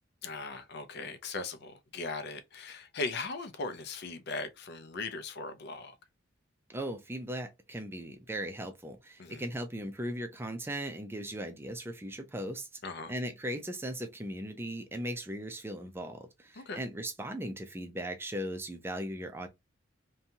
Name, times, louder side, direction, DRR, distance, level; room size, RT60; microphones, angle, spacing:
voice 1, 0.2-6.0 9.2-9.4 12.8-13.1 16.5-16.8, left 3 dB, 55° left, 0.5 m, -39 dB
voice 2, 6.7-12.7 13.1-19.5, right 1 dB, 10° right, 0.4 m, -38 dB
2.7 x 2.3 x 2.7 m
head